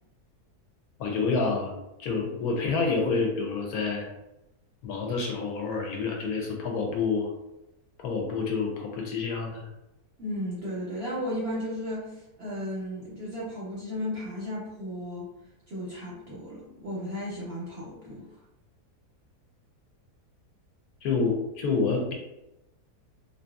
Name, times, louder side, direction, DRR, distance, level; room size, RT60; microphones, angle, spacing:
voice 1, 1.0-4.1 4.8-7.3 8.0-9.7 21.0-22.1, left 4 dB, 75° left, 1 dB, 1.0 m, -28 dB
voice 2, 10.2-15.3 15.7-18.2, equal, 55° right, -6 dB, 0.7 m, -34 dB
2.6 x 2.6 x 2.2 m, 0.93 s
omnidirectional pair, 1.7 m